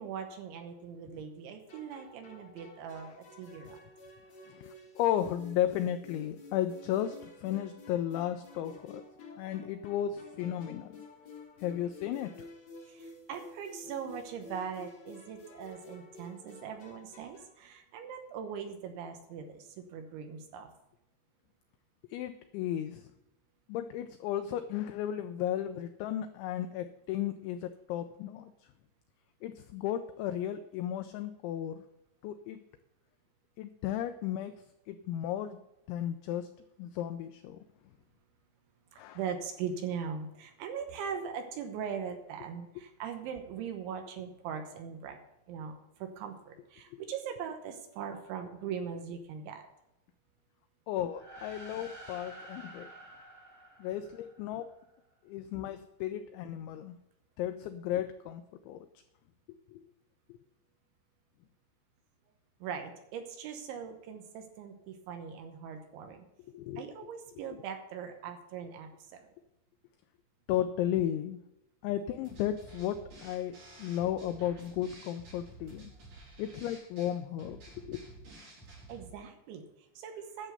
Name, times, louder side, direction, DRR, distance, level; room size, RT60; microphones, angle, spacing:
voice 1, 0.0-3.8 12.9-20.7 38.9-45.2 45.5-49.7 62.6-66.3 66.8-69.3 78.9-80.5, right 7 dB, 75° right, 5 dB, 3.1 m, -40 dB
sound 1, 1.7-17.6, left 2 dB, 40° left, 3.3 m, -51 dB
voice 2, 4.5-9.0 9.4-10.9 11.6-12.5 22.1-23.1 23.7-28.5 29.4-31.8 32.2-32.6 33.6-34.5 34.9-35.6 35.9-36.5 36.8-37.6 39.0-39.2 46.9-47.0 50.9-52.9 53.8-54.7 55.3-57.0 57.4-58.9 59.7-59.8 66.5-66.8 70.5-71.4 71.8-75.9 76.4-78.0, left 11 dB, 85° left, 9 dB, 2.6 m, -34 dB
sound 2, 51.0-54.7, right 1 dB, 30° right, 1.4 m, -50 dB
sound 3, 72.2-79.1, right 2 dB, 50° right, 7.0 m, -52 dB
11.0 x 7.2 x 6.6 m, 0.89 s
omnidirectional pair, 6.0 m